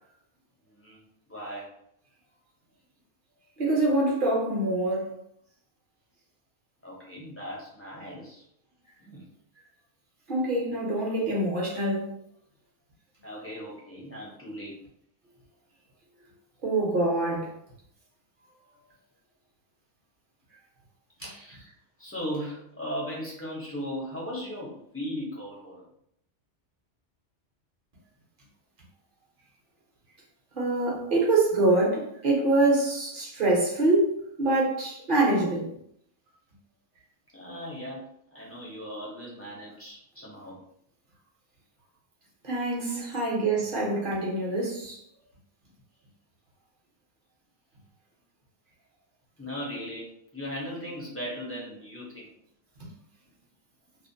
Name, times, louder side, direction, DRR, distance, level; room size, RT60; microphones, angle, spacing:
voice 1, 0.7-1.7 6.8-8.4 9.0-9.3 13.2-14.8 21.2-25.8 30.9-31.2 37.3-40.6 42.8-43.1 49.4-52.3, equal, 15° left, -5 dB, 0.5 m, -38 dB
voice 2, 3.6-5.1 10.3-12.1 16.6-17.5 30.6-35.7 42.4-45.0, right 2 dB, 50° right, -4 dB, 0.8 m, -25 dB
2.4 x 2.0 x 2.6 m, 0.70 s
omnidirectional pair, 1.2 m